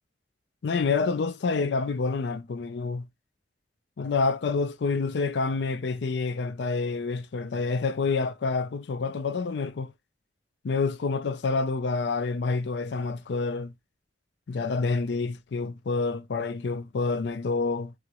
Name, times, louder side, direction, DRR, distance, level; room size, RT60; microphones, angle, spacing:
voice 1, 0.6-3.1 4.0-9.9 10.6-13.7 14.5-17.9, left 4 dB, 65° left, 0.4 m, -28 dB
6.1 x 2.0 x 2.9 m
head